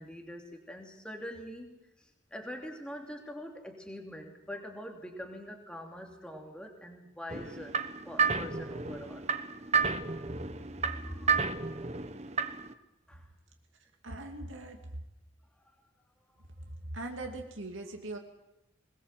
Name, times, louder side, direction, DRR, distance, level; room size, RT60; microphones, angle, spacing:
voice 1, 0.0-9.3 10.2-10.4 10.8-11.4 13.1-13.3, equal, 5° left, 1 dB, 3.1 m, -44 dB
sound 1, 7.3-12.7, right 5 dB, 35° right, 1.0 m, -31 dB
voice 2, 13.8-14.8 16.7-18.2, right 2 dB, 85° right, 2 dB, 2.6 m, -41 dB
21.5 x 20.5 x 7.6 m, 0.90 s
head